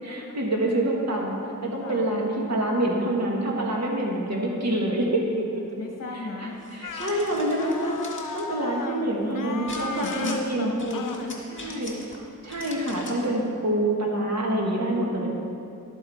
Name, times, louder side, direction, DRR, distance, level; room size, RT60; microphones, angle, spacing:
voice 1, 0.0-5.4 6.1-8.0 8.3-10.7 11.5-11.9 12.4-15.3, right 1 dB, 55° right, -2 dB, 1.8 m, -26 dB
voice 2, 5.4-6.6 9.7-11.4 15.1-15.3, left 2 dB, 55° left, 0 dB, 1.1 m, -34 dB
sound 1, 6.6-8.5 9.7-10.4 10.8-12.2 12.5-13.3, left 2 dB, 40° left, 1.7 m, -42 dB
sound 2, 6.8-7.2 7.6-9.0 9.3-10.5 10.9-11.2, left 5 dB, 85° left, 0.6 m, -36 dB
12.0 x 9.0 x 4.2 m, 2.6 s
wide cardioid pair, 110°, 32 cm